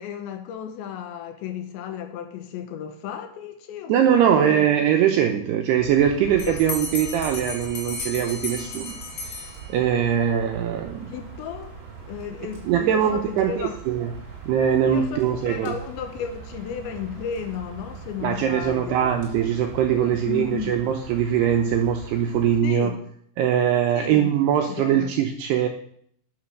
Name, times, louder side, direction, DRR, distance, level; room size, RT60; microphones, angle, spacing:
voice 1, 0.0-4.7 6.5-6.6 11.1-11.8 12.1-13.8 14.9-19.1 19.9-20.7 22.6-23.0 23.9-25.1, left 8 dB, 75° left, 7 dB, 3.0 m, -34 dB
voice 2, 3.9-9.0 9.3-9.4 9.7-11.1 12.7-14.1 14.5-15.7 18.2-22.9 23.4-25.7, right 9 dB, 80° right, 4 dB, 2.4 m, -22 dB
sound 1, 5.8-22.6, right 6 dB, 50° right, 4.6 m, -42 dB
Bell, 6.4-10.0, left 3 dB, 55° left, 3.9 m, -34 dB
9.1 x 8.5 x 6.4 m, 0.64 s
omnidirectional pair, 5.6 m